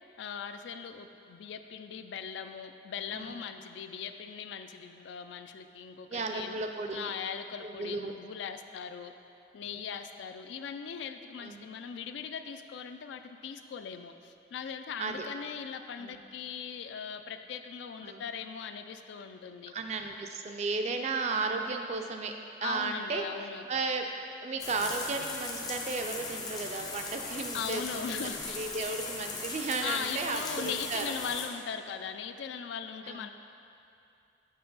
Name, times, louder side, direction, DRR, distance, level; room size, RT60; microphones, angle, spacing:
voice 1, 0.2-6.6 6.9-9.1 9.5-19.7 22.6-23.7 27.5-28.6 29.8-33.3, left 7 dB, 85° left, 9 dB, 0.3 m, -39 dB
voice 2, 3.1-3.4 6.1-7.1 7.6-8.1 9.6-9.9 11.4-11.7 15.0-15.3 16.0-16.2 18.0-18.2 19.7-22.3 22.6-23.3 23.7-24.1 24.4-31.1 33.0-33.3, right 3 dB, 40° right, 4 dB, 0.3 m, -34 dB
sound 1, 24.6-31.5, left 3 dB, 20° left, 0.5 m, -38 dB
5.8 x 5.6 x 3.9 m, 2.6 s
head